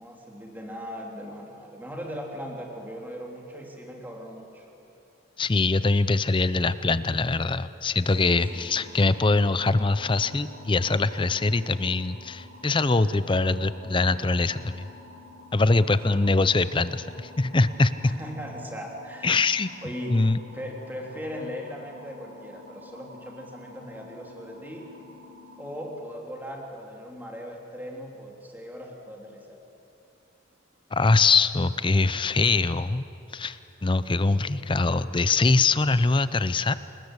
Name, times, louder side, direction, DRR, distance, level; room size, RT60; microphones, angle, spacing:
voice 1, 0.0-4.6 8.2-9.1 16.1-16.3 18.0-19.4 19.8-20.2 20.5-24.9 25.6-29.6 34.2-34.7, equal, 10° right, 0 dB, 3.1 m, -39 dB
voice 2, 5.4-14.9 15.5-17.9 19.2-19.7 20.1-20.4 30.9-33.1 33.3-36.7, left 3 dB, 25° left, 14 dB, 0.5 m, -23 dB
sound 1, 8.0-25.9, left 2 dB, 65° right, 7.4 m, -49 dB
28.0 x 20.0 x 8.2 m, 2.9 s
head